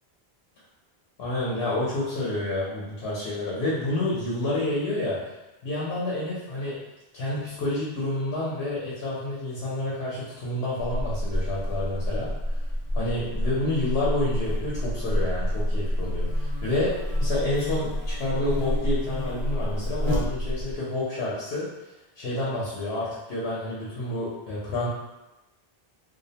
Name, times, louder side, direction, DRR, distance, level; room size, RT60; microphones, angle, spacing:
voice 1, 1.2-5.2 5.6-6.7 7.1-12.6 12.9-16.9 17.2-21.7 22.2-24.9, left 2 dB, 80° left, -7 dB, 0.9 m, -29 dB
Buzz, 10.8-20.8, equal, 85° right, 0.9 m, -28 dB
2.5 x 2.0 x 2.7 m, 1.0 s
omnidirectional pair, 1.0 m